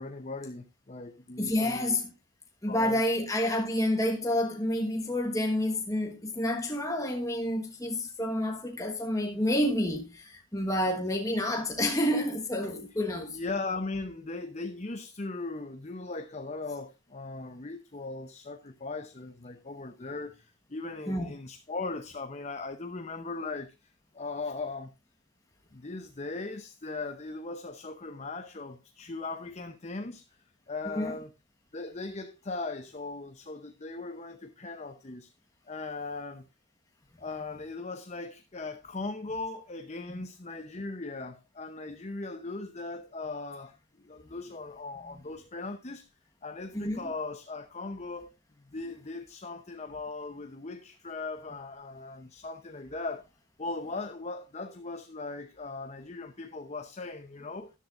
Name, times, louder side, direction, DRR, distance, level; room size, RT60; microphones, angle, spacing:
voice 1, 0.0-2.0 2.7-3.0 13.3-24.9 25.7-30.4 30.7-31.3 31.7-35.3 35.7-36.5 37.2-46.1 46.4-48.3 48.7-53.3 53.6-57.7, left 3 dB, 30° left, 0.8 m, -38 dB
voice 2, 1.4-2.1 2.6-13.4 21.1-21.3 30.9-31.1 46.7-47.1, left 1 dB, 15° left, 1.3 m, -29 dB
13.5 x 11.0 x 2.5 m
head